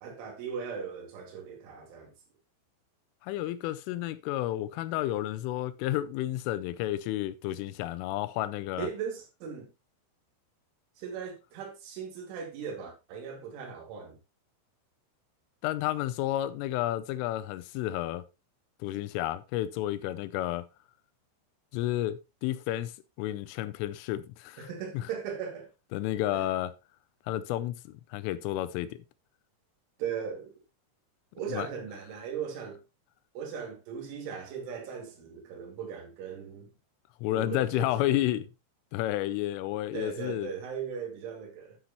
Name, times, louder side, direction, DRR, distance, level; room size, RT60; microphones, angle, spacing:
voice 1, 0.0-2.1 8.8-9.7 11.0-14.2 24.6-25.7 26.3-26.5 30.0-30.5 31.3-32.8 33.3-36.7 37.3-38.4 39.9-41.8, right 7 dB, 70° right, 4.6 m, -38 dB
voice 2, 3.2-8.9 15.6-18.2 18.8-20.6 21.7-22.9 23.2-24.7 24.9-25.0 25.9-26.7 27.3-27.8 28.1-29.0 31.5-31.7 37.2-38.5 38.9-40.5, left 14 dB, 85° left, 3.1 m, -31 dB
10.5 x 7.9 x 2.9 m
omnidirectional pair, 5.8 m